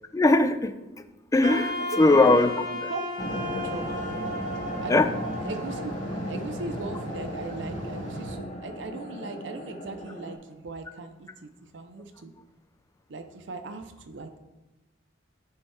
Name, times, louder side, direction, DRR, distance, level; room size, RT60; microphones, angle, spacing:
voice 1, 0.1-1.1 1.3-2.5 4.9-5.1, left 2 dB, 15° left, 10 dB, 0.3 m, -20 dB
Wind instrument woodwind instrument, 1.4-6.5, left 1 dB, 45° right, 1.0 m, -34 dB
voice 2, 1.9-2.3 2.9-3.0 3.6-4.0 4.8-5.1 5.4-5.9 6.2-12.3 13.1-14.4, right 3 dB, 70° right, 7 dB, 0.6 m, -39 dB
sound 1, 3.2-10.3, equal, 40° left, 0.9 m, -36 dB
sound 2, 3.2-8.4, right 1 dB, 85° right, 1.0 m, -39 dB
9.3 x 4.4 x 3.4 m, 1.1 s
head